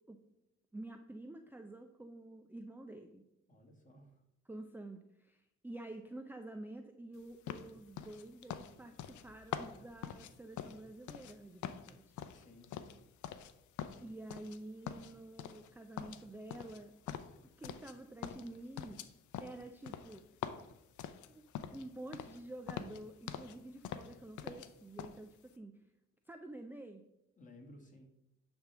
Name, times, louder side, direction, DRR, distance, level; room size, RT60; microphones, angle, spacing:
voice 1, 0.7-3.2 4.5-12.2 14.0-16.9 17.6-19.1 19.4-20.2 21.3-21.4 21.7-25.8 26.3-27.0, right 1 dB, 5° right, 6 dB, 0.5 m, -49 dB
voice 2, 3.5-4.2 12.3-13.0 27.4-28.1, left 1 dB, 25° left, 0 dB, 2.1 m, -58 dB
sound 1, 7.5-11.4 11.6-13.5 13.8-14.6 14.9-15.7 16.0-18.0 18.2-21.9 22.1-22.4 22.7-23.6 23.8-24.7 25.0-25.2, left 9 dB, 75° left, 0.7 m, -44 dB
10.0 x 3.6 x 6.0 m, 0.86 s
cardioid pair, 90°, 30 cm